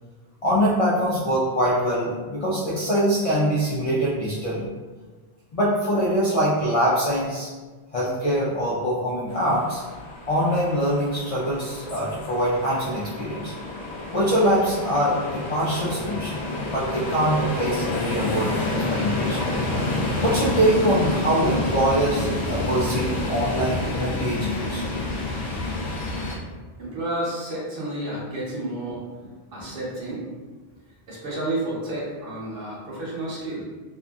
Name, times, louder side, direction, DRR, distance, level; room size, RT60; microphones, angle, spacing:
voice 1, 0.4-4.7 5.5-7.5 7.9-9.8 10.3-13.5 14.1-19.5 20.2-24.8 29.6-29.7, equal, 50° left, -9 dB, 0.4 m, -24 dB
sound 1, 9.3-26.4, left 2 dB, 85° left, 0.9 m, -28 dB
voice 2, 26.8-29.0 29.5-30.2 31.1-33.6, right 1 dB, 60° right, -5 dB, 0.9 m, -30 dB
2.6 x 2.5 x 2.3 m, 1.3 s
omnidirectional pair, 1.1 m